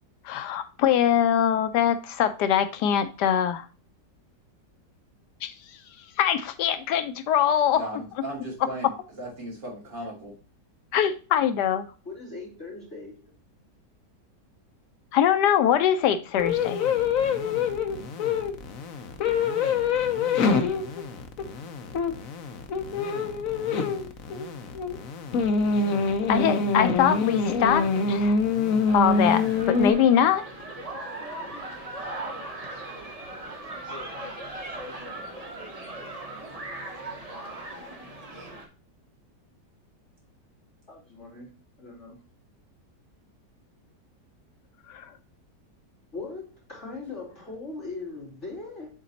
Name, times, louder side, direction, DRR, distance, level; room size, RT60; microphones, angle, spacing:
voice 1, 0.2-3.7 5.4-5.5 6.2-7.8 10.9-11.9 15.1-16.9 26.3-28.4 28.9-30.4 44.9-45.1, left 9 dB, 80° left, 1.1 m, -23 dB
voice 2, 7.7-10.3, right 1 dB, 80° right, 3.5 m, -36 dB
voice 3, 12.0-13.2 33.5-34.1 40.9-41.5 41.8-42.2 46.1-48.9, left 3 dB, 40° left, 3.7 m, -40 dB
sound 1, 16.4-29.9, left 4 dB, 60° left, 1.1 m, -25 dB
sound 2, 28.9-38.7, right 2 dB, 25° right, 1.1 m, -38 dB
7.4 x 3.9 x 4.1 m
omnidirectional pair, 1.8 m